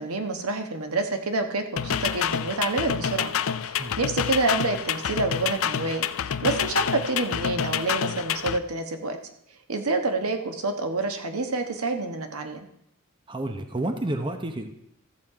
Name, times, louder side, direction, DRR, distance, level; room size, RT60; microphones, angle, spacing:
voice 1, 0.0-3.3 3.6-6.1 6.4-9.2 9.7-12.6, right 3 dB, 80° right, 6 dB, 1.2 m, -28 dB
sound 1, 1.8-8.6, left 8 dB, 65° left, 0.4 m, -28 dB
voice 2, 13.3-14.7, right 1 dB, 20° right, 6 dB, 0.8 m, -30 dB
14.0 x 7.4 x 4.8 m, 0.76 s
head